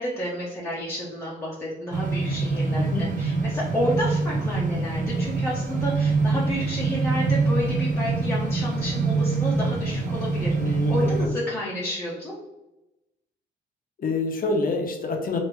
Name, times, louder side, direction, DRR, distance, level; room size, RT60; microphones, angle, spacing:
voice 1, 0.0-12.3, left 1 dB, 10° left, -7 dB, 0.8 m, -30 dB
sound 1, 1.9-11.3, right 3 dB, 40° right, 0.7 m, -25 dB
voice 2, 2.8-3.1 10.6-11.3 14.0-15.4, left 3 dB, 45° left, 3 dB, 0.6 m, -27 dB
3.2 x 2.6 x 3.0 m, 0.97 s
cardioid pair, 90°, 20 cm